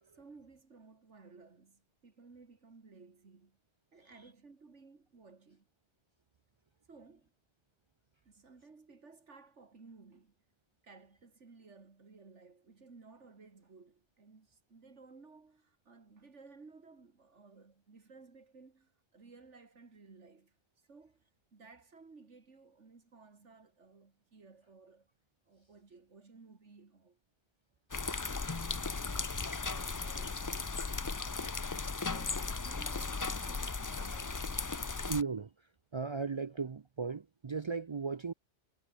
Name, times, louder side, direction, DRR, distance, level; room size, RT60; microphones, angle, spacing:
voice 1, 0.1-3.6 3.9-5.7 6.9-7.3 8.2-10.4 10.8-20.6 20.9-21.2 21.5-25.1 25.5-27.2 29.1-30.7 32.0-34.8, right 4 dB, 80° right, 2.7 m, -57 dB
sound 1, 27.9-35.2, left 4 dB, 25° left, 0.4 m, -36 dB
voice 2, 35.1-38.3, right 5 dB, 50° right, 0.3 m, -37 dB
omnidirectional pair, 1.2 m